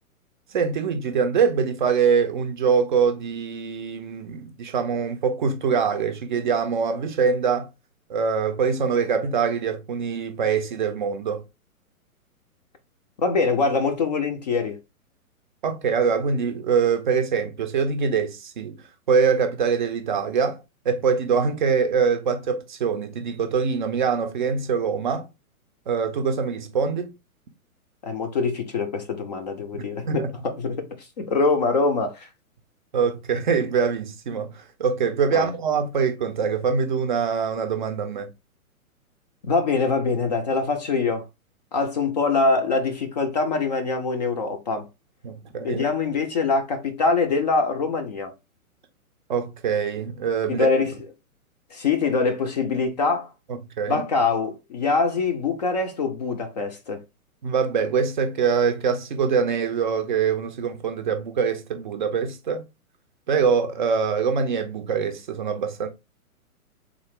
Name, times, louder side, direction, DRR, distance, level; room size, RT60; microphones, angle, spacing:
voice 1, 0.5-7.7 8.1-11.4 15.6-18.8 19.1-25.3 25.9-27.1 30.1-30.3 32.9-38.3 45.2-45.8 49.3-50.7 53.5-54.0 57.4-62.6 63.3-65.9, right 6 dB, 35° right, 0.5 m, -24 dB
voice 2, 13.2-14.8 28.0-32.3 35.3-35.5 39.4-41.2 41.7-44.9 45.6-48.3 50.5-50.9 51.7-53.3 53.9-57.0, left 4 dB, 30° left, 0.4 m, -24 dB
3.7 x 2.4 x 3.4 m
hypercardioid pair, 125°, 44 cm